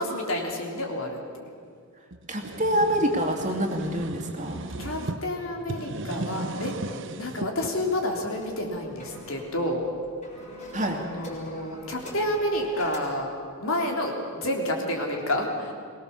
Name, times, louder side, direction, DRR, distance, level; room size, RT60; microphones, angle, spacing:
voice 1, 0.0-1.4 4.8-6.8 7.2-9.8 10.9-13.3 13.6-15.7, left 1 dB, 65° left, 1 dB, 3.6 m, -29 dB
sound 1, 2.1-5.2 5.6-7.5, right 2 dB, 55° right, 1.0 m, -36 dB
voice 2, 2.3-4.6 10.7-11.0, equal, 35° right, 3 dB, 2.4 m, -26 dB
sound 2, 8.4-13.3, left 1 dB, 35° left, 4.9 m, -43 dB
23.0 x 19.5 x 7.2 m, 2.1 s
head